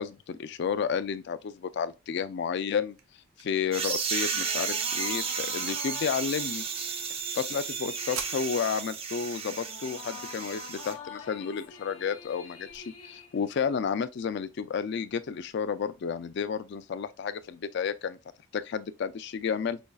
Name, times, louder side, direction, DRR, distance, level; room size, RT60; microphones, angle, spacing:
voice 1, 0.0-3.0 3.4-6.6 7.3-18.2 18.5-19.8, left 6 dB, 55° left, 0.3 m, -31 dB
sound 1, 2.4-14.4, right 7 dB, 80° right, 0.6 m, -50 dB
sound 2, 3.7-10.9, right 6 dB, 25° right, 0.3 m, -33 dB
sound 3, 4.3-14.0, left 6 dB, 85° left, 0.7 m, -46 dB
5.1 x 2.3 x 2.2 m
head